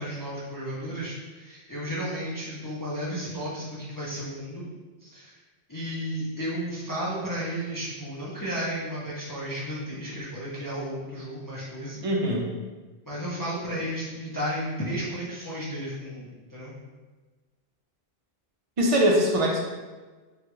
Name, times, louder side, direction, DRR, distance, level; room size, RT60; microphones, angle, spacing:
voice 1, 0.0-4.6 5.0-5.4 5.7-12.0 13.0-16.7, equal, 25° left, -8 dB, 0.5 m, -33 dB
voice 2, 12.0-12.5 18.8-19.6, equal, 45° right, -1 dB, 0.5 m, -22 dB
3.1 x 2.4 x 2.9 m, 1.3 s
omnidirectional pair, 1.0 m